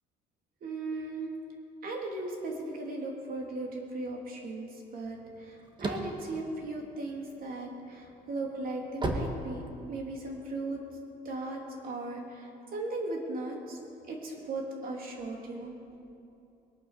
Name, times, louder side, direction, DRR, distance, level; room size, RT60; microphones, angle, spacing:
voice 1, 0.6-1.3 1.8-9.6 9.9-10.8 11.2-13.8 14.1-15.8, right 2 dB, 60° right, 0 dB, 3.1 m, -37 dB
sound 1, 5.3-7.5 8.0-10.2, right 2 dB, 25° right, 1.7 m, -34 dB
21.0 x 9.1 x 6.7 m, 2.7 s
cardioid pair, 110°, 17 cm